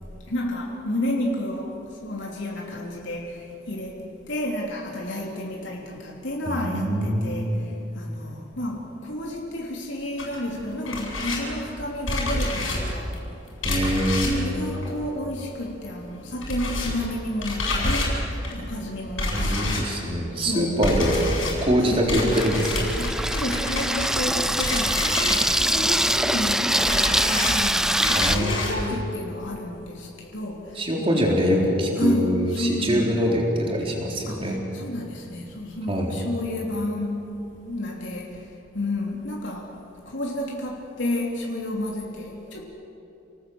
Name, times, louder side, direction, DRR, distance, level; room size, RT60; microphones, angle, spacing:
voice 1, 0.1-13.3 14.2-19.8 20.3-20.8 21.8-22.0 23.0-31.1 32.0-33.2 34.3-42.6, left 1 dB, 65° left, -2 dB, 3.2 m, -31 dB
voice 2, 6.5-7.6 13.6-14.6 19.3-21.2 21.6-22.9 28.1-28.9 30.8-34.6 35.9-36.1, equal, 25° right, -1 dB, 4.2 m, -24 dB
sound 1, 10.2-15.7 16.0-28.8, left 2 dB, 85° left, 7.8 m, -29 dB
Water tap faucet / Sink (filling or washing), 21.2-28.4, right 1 dB, 5° right, 0.5 m, -24 dB
30.0 x 19.0 x 8.0 m, 2.9 s
head